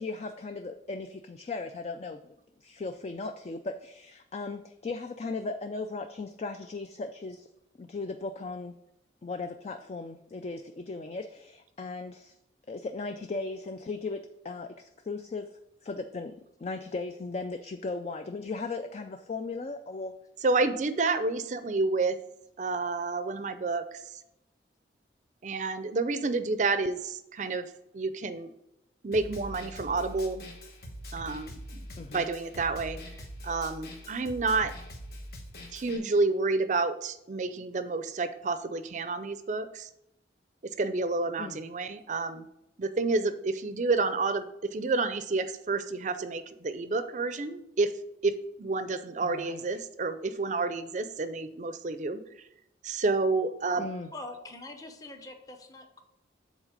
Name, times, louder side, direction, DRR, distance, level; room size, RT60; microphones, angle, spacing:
voice 1, 0.0-2.3 2.6-7.5 7.8-8.7 9.2-12.3 12.7-15.5 15.8-16.3 16.6-20.1 32.0-32.3 41.4-41.6 49.2-49.8 53.8-54.1, left 3 dB, 35° left, 7 dB, 0.3 m, -37 dB
voice 2, 20.4-22.2 22.6-24.0 25.4-27.7 27.9-28.5 29.0-30.4 31.1-31.8 32.1-33.0 33.4-34.7 35.7-39.9 40.8-42.5 42.8-47.9 48.2-52.2 52.8-53.9, right 3 dB, 40° right, 11 dB, 0.5 m, -29 dB
Snare drum, 29.1-36.0, equal, 60° left, 1.1 m, -43 dB
voice 3, 54.1-56.0, left 2 dB, 20° left, 5 dB, 0.7 m, -44 dB
7.3 x 4.0 x 5.1 m, 0.83 s
head